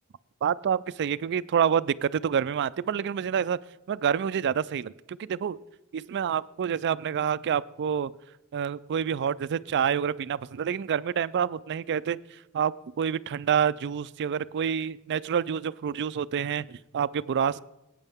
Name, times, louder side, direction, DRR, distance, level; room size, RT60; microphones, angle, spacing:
voice 1, 0.4-3.6 3.9-5.6 5.9-8.1 8.5-12.2 12.5-17.6, right 8 dB, 50° right, 18 dB, 0.3 m, -27 dB
17.0 x 9.0 x 3.5 m, 0.97 s
head